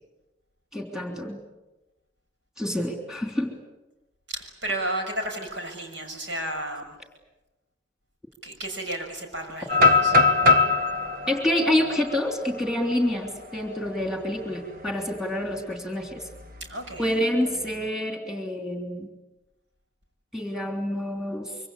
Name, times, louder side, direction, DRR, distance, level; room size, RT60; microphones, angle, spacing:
voice 1, 0.7-1.4 2.6-3.5 11.3-16.2 17.0-19.1 20.3-21.6, left 1 dB, 5° right, 3 dB, 3.3 m, -27 dB
voice 2, 4.3-7.0 8.4-10.1 16.6-17.2 17.5-17.7, right 1 dB, 75° right, 3 dB, 6.4 m, -33 dB
sound 1, 9.7-13.6 14.0-14.1 14.6-14.9 16.3-17.1, left 3 dB, 50° right, 1.5 m, -22 dB
25.5 x 24.5 x 8.5 m, 1.0 s
head